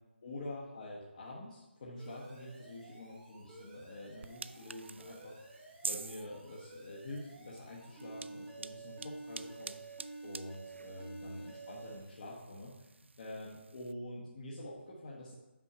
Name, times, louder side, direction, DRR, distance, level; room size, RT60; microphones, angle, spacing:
voice 1, 0.2-9.9 10.2-15.3, left 1 dB, 40° left, -6 dB, 1.2 m, -47 dB
Alarm, 2.0-12.0, right 3 dB, 10° right, 1.0 m, -51 dB
sound 1, 4.2-13.9, right 4 dB, 80° right, 0.3 m, -48 dB
6.1 x 5.9 x 4.9 m, 1.0 s
figure-of-eight pair, 165°, 6 cm